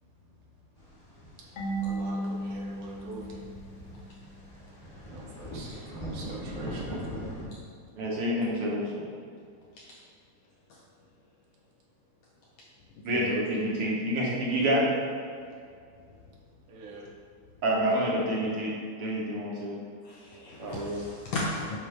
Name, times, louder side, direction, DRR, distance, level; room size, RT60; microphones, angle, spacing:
sound 1, 0.8-7.5, equal, 20° left, 1.2 m, -41 dB
Marimba xylophone / Wood, 1.6-4.3, right 2 dB, 50° left, 1.7 m, -35 dB
voice 1, 1.8-3.4 5.1-7.4 16.7-17.1, right 3 dB, 85° right, -2 dB, 2.6 m, -44 dB
voice 2, 8.0-9.0 13.0-14.9 17.6-18.7 19.0-19.8 20.6-21.0, equal, 60° right, -4 dB, 1.6 m, -28 dB
voice 3, 20.0-21.8, left 2 dB, 75° left, -3 dB, 1.4 m, -35 dB
10.0 x 4.6 x 3.3 m, 2.3 s
omnidirectional pair, 3.5 m